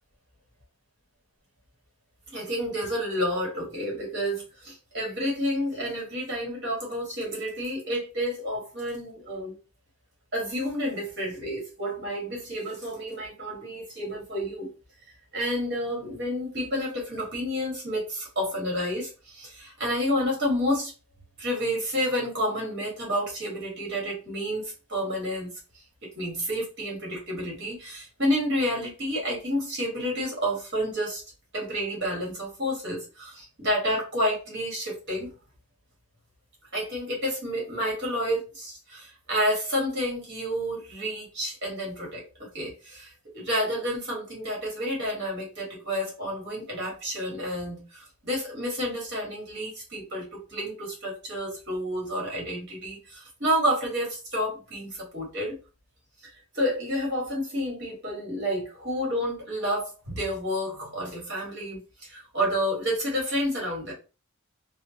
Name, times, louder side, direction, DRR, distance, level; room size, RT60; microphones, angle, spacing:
voice 1, 2.3-9.6 10.3-14.7 15.3-20.9 21.4-25.5 26.0-31.2 31.5-35.3 36.7-55.6 56.5-63.9, equal, 55° right, -2 dB, 1.7 m, -30 dB
3.5 x 2.2 x 2.8 m, 0.31 s
head